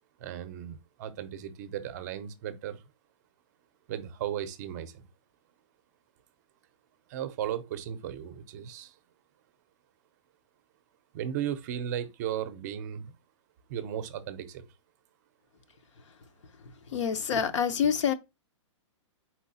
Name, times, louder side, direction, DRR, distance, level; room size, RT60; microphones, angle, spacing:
voice 1, 0.2-2.8 3.9-5.0 7.1-9.0 11.1-13.2 13.7-14.7, right 10 dB, 35° right, 0.5 m, -36 dB
voice 2, 16.9-18.1, left 7 dB, 70° left, 0.7 m, -26 dB
4.3 x 4.0 x 2.6 m
hypercardioid pair, 160°, 16 cm